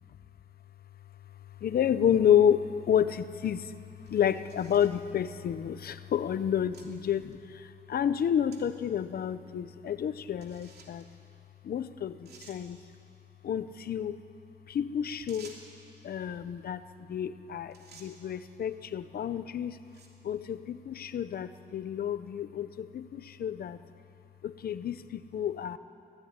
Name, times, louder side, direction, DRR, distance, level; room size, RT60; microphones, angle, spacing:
voice 1, 1.3-11.0 11.6-12.8 13.4-14.2 14.7-15.6 16.0-19.8 20.2-23.8 24.4-25.8, left 9 dB, 60° left, 13 dB, 0.8 m, -30 dB
sound 1, 4.1-5.0 5.8-5.9 6.7-6.9 7.3-7.4 8.5-8.6 9.0-9.1 10.4-11.1 11.8-11.9 12.3-12.6 15.3-15.8 17.2-17.4 17.7-18.1 18.9-19.2 19.8-20.2, right 4 dB, 70° right, 3.0 m, -53 dB
23.5 x 16.0 x 9.7 m, 2.6 s
wide cardioid pair, 180°, 17 cm